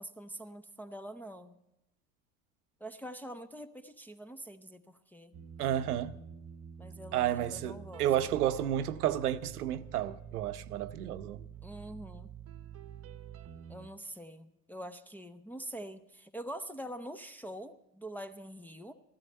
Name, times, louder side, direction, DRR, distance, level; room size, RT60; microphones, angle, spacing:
voice 1, 0.0-1.6 2.8-5.4 6.8-8.0 11.6-12.3 13.7-18.9, right 1 dB, 5° left, 0.4 m, -45 dB
sound 1, 5.3-13.9, right 8 dB, 30° right, 0.8 m, -48 dB
voice 2, 5.6-6.2 7.1-11.4, right 11 dB, 90° right, 0.7 m, -31 dB
15.0 x 12.5 x 4.2 m
hypercardioid pair, 90°, 44 cm